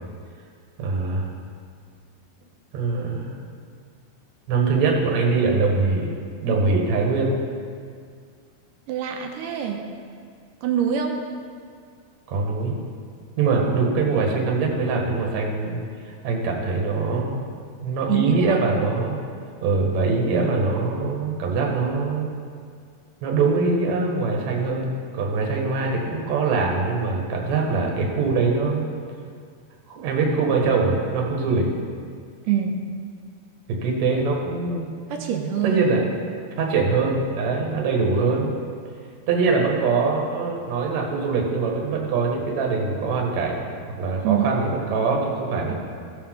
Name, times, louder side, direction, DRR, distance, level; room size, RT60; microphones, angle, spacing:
voice 1, 0.8-1.2 2.7-3.3 4.5-6.1 6.4-7.4 12.3-12.8 13.4-17.4 17.8-19.2 19.6-22.3 23.2-28.9 29.9-31.7 33.7-34.9 35.6-36.1 36.6-38.5 39.3-43.6 43.9-45.7, right 4 dB, 55° right, 0 dB, 2.4 m, -23 dB
voice 2, 8.9-9.9 10.6-11.2 18.1-18.6 32.5-33.0 35.1-35.9 44.2-44.5, right 9 dB, 75° right, 3 dB, 2.0 m, -25 dB
17.0 x 7.0 x 3.8 m, 2.1 s
omnidirectional pair, 4.4 m